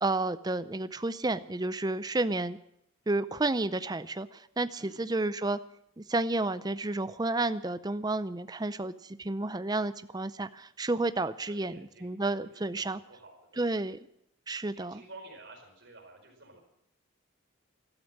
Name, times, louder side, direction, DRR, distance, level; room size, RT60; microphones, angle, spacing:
voice 1, 0.0-2.6 3.1-5.6 6.0-13.0 13.6-14.0 14.5-15.0, right 2 dB, 20° right, 13 dB, 0.5 m, -31 dB
voice 2, 11.5-12.1 12.4-13.7 14.7-16.6, right 2 dB, 60° right, 2 dB, 4.9 m, -52 dB
13.0 x 13.0 x 7.5 m, 0.77 s
head